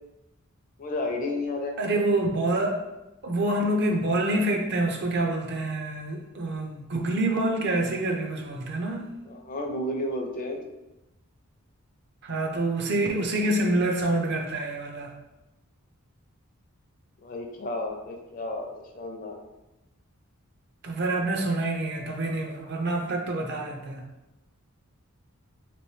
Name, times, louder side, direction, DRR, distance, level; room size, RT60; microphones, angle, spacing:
voice 1, 0.8-1.8 9.3-10.6 17.2-19.4, left 1 dB, 40° left, 3 dB, 0.4 m, -32 dB
voice 2, 1.8-2.8 3.2-9.1 12.2-15.1 20.8-24.0, right 2 dB, 50° right, 2 dB, 0.5 m, -27 dB
3.0 x 3.0 x 3.1 m, 0.98 s
head